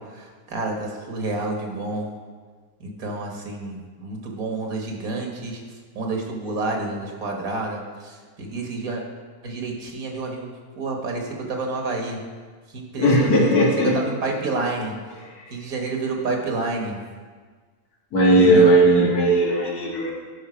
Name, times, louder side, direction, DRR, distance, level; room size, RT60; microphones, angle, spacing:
voice 1, 0.0-2.1 2.8-5.6 6.0-9.0 9.4-12.2 12.7-15.0 15.5-17.0 18.4-18.8, right 3 dB, 70° right, 1 dB, 1.8 m, -29 dB
voice 2, 13.0-14.0 18.1-20.1, right 1 dB, 85° left, -3 dB, 2.3 m, -17 dB
11.0 x 5.3 x 5.0 m, 1.5 s
omnidirectional pair, 1.6 m